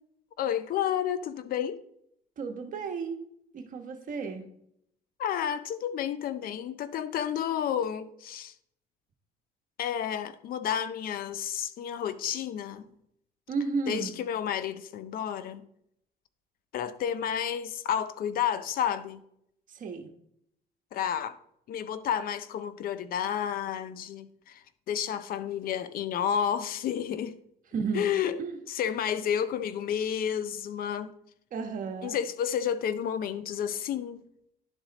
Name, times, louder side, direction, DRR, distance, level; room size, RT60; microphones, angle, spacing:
voice 1, 0.4-1.8 5.2-8.5 9.8-12.9 13.9-15.6 16.7-19.2 20.9-21.4 21.7-27.3 27.9-28.4 28.7-31.1 32.0-34.2, left 9 dB, 60° left, 0.5 m, -31 dB
voice 2, 2.4-3.2 3.5-4.4 13.5-14.1 19.7-20.1 27.7-28.1 28.4-28.6 31.5-32.2, right 5 dB, 50° right, 1.2 m, -33 dB
11.0 x 3.9 x 4.0 m
cardioid pair, 110°, 17 cm